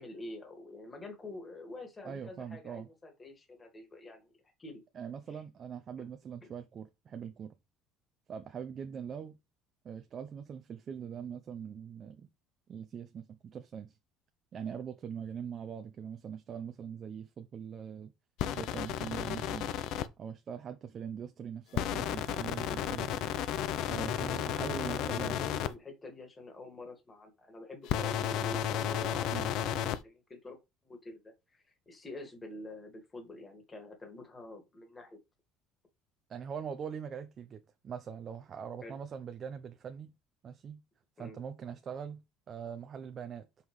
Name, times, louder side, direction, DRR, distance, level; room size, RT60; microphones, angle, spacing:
voice 1, 0.0-4.3 4.6-4.8 5.3-5.4 6.0-6.1 24.2-30.6 30.8-35.2 38.8-39.0 41.2-41.4, left 2 dB, 20° left, 1.9 m, -47 dB
voice 2, 2.0-2.9 4.9-7.5 8.3-9.4 9.8-12.3 12.7-13.9 14.5-18.1 18.5-19.7 20.2-23.1 23.9-25.4 29.3-29.5 36.3-40.1 40.4-40.8 41.2-42.2 42.5-43.5, right 7 dB, 35° right, 0.6 m, -42 dB
sound 1, 18.4-20.1 21.7-25.7 27.8-30.0, left 11 dB, 60° left, 0.6 m, -33 dB
6.1 x 5.5 x 3.2 m
cardioid pair, 140°, 0 cm